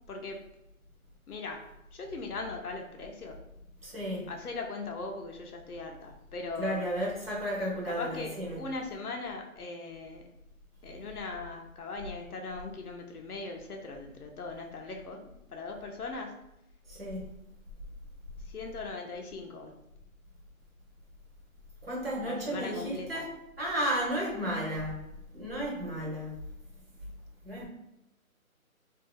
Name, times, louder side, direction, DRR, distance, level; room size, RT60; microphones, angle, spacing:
voice 1, 0.1-0.4 1.3-3.4 4.3-6.8 7.8-10.3 10.8-15.2 15.5-16.4 18.5-19.8 22.2-23.3, left 3 dB, 90° left, 0.8 m, -39 dB
voice 2, 3.8-4.3 6.6-8.6 16.9-17.3 21.8-25.0 25.3-26.4 27.4-27.7, equal, 40° right, 1.0 m, -33 dB
2.7 x 2.5 x 2.3 m
hypercardioid pair, 170°, 43 cm